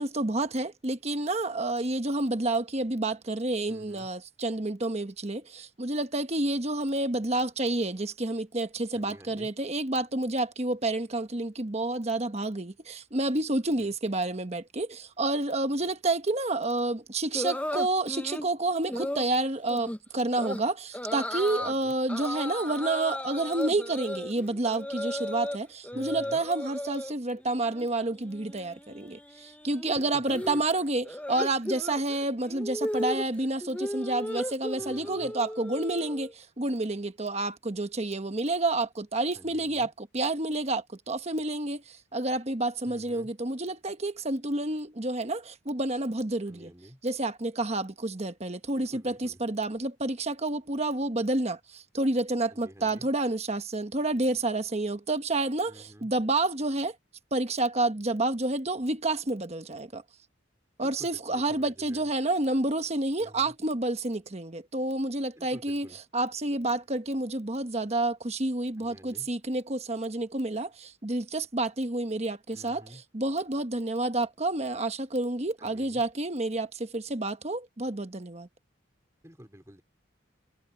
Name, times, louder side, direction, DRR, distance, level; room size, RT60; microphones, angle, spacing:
voice 1, 0.0-46.7 47.0-56.9 57.3-60.0 60.8-65.9 66.1-72.8 73.1-78.5, right 2 dB, 35° right, 1.2 m, -29 dB
voice 2, 3.7-4.1 8.9-9.5 13.8-13.9 21.6-22.0 25.9-26.4 30.0-30.6 34.8-35.3 39.3-39.9 42.9-43.3 46.5-47.0 48.7-49.4 52.5-53.1 55.7-56.1 60.8-62.1 63.2-63.5 65.4-66.0 68.8-69.3 72.5-73.0 75.6-76.0 79.2-79.8, equal, 15° right, 3.6 m, -50 dB
sound 1, 17.3-18.5 18.9-19.3 19.7-20.0 20.3-20.6 20.9-21.7 22.1-25.6 25.8-27.1 27.5-27.9 28.1-36.3, left 1 dB, 5° left, 0.9 m, -35 dB
head